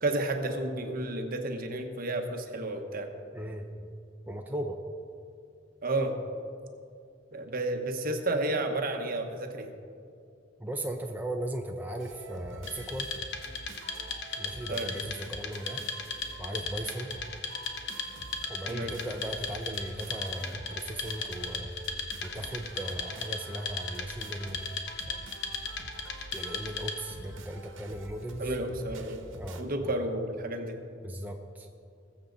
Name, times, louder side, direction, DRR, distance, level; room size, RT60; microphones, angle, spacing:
voice 1, 0.0-3.1 5.8-6.1 7.3-9.7 14.7-14.9 18.7-18.9 28.4-29.2 29.6-30.8, right 2 dB, 50° right, 5 dB, 1.1 m, -31 dB
voice 2, 3.3-3.7 4.3-4.8 10.6-13.1 14.4-15.8 16.4-17.1 18.5-21.7 22.2-24.7 25.1-25.2 26.3-28.5 29.4-30.0 31.0-31.7, right 1 dB, 10° right, 1 dB, 0.5 m, -37 dB
sound 1, 12.0-29.6, right 2 dB, 75° right, 1.1 m, -47 dB
Wood, 12.7-27.2, left 4 dB, 60° left, 1.1 m, -37 dB
20.5 x 7.2 x 3.9 m, 2.4 s
head